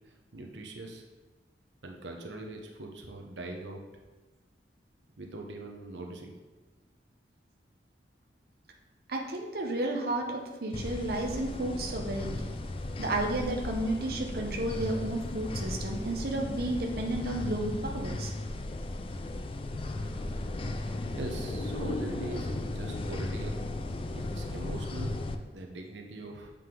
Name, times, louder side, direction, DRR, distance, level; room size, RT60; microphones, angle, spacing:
voice 1, 0.3-1.0 1.8-3.8 5.2-6.3 20.8-23.6 24.1-25.2 25.4-26.5, right 2 dB, 85° right, 2 dB, 0.9 m, -41 dB
voice 2, 9.1-12.3 13.0-18.3, right 1 dB, 55° right, 0 dB, 0.8 m, -32 dB
sound 1, 10.7-25.3, left 2 dB, 30° left, 0.4 m, -36 dB
7.7 x 5.2 x 3.8 m, 1.2 s
head